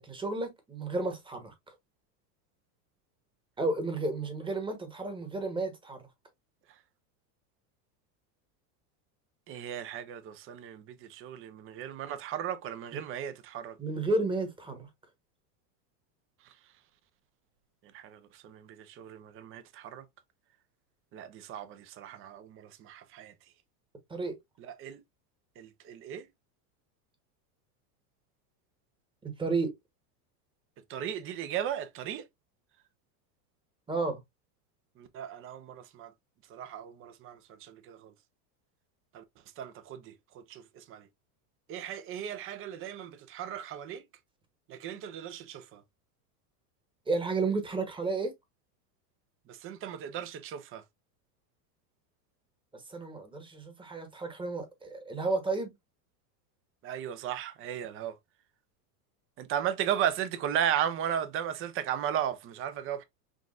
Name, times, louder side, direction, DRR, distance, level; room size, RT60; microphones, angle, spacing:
voice 1, 0.0-1.5 3.6-6.0 12.9-13.0 13.8-14.9 24.1-24.4 29.2-29.7 33.9-34.2 47.1-48.3 52.7-55.7, right 3 dB, 10° right, 1.1 m, -32 dB
voice 2, 9.5-10.8 11.1-13.7 17.9-18.7 19.0-20.0 21.1-23.3 24.8-25.0 25.6-26.2 30.9-32.2 35.0-36.1 36.5-38.1 39.1-39.2 39.6-40.1 40.5-40.6 40.9-41.0 41.7-44.0 44.7-45.8 49.6-50.8 56.8-58.1 59.4-63.0, right 9 dB, 30° right, 0.6 m, -35 dB
6.1 x 2.4 x 2.4 m
supercardioid pair, 130°, 47 cm